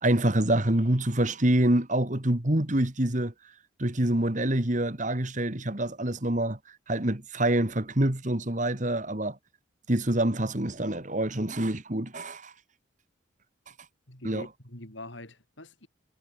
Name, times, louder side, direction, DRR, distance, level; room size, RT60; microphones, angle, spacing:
voice 1, 0.0-3.3 3.8-6.6 6.9-9.4 9.9-12.5 14.2-14.5, right 1 dB, 40° right, 2.1 m, -26 dB
voice 2, 14.1-15.9, left 1 dB, 70° left, 6.3 m, -44 dB
head